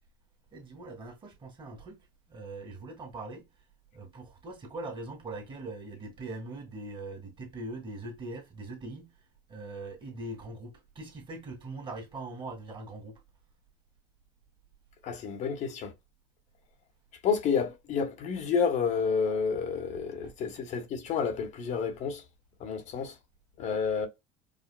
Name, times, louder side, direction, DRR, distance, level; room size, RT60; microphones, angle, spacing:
voice 1, 0.5-2.0 2.3-3.5 3.9-9.1 9.5-13.1 20.2-20.3, right 2 dB, 30° right, 1.7 m, -41 dB
voice 2, 15.0-15.9 17.2-22.2 22.6-23.1 23.6-24.1, left 6 dB, 50° left, 0.9 m, -30 dB
4.9 x 2.5 x 2.2 m
supercardioid pair, 115°, 16 cm